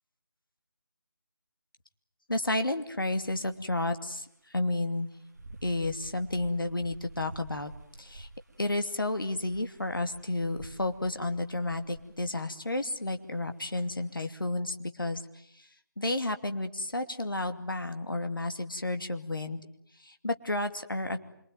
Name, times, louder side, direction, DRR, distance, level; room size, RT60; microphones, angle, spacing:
voice 1, 2.3-4.2 4.5-5.1 5.6-7.7 8.0-8.3 8.6-15.2 16.0-19.6 20.0-21.2, left 2 dB, 70° left, 7 dB, 2.6 m, -31 dB
sound 1, 3.2-3.9 4.6-4.7 5.1-12.3 12.8-13.3, right 2 dB, 45° right, 1.3 m, -50 dB
26.5 x 23.5 x 9.4 m, 0.72 s
figure-of-eight pair, 160°, 12 cm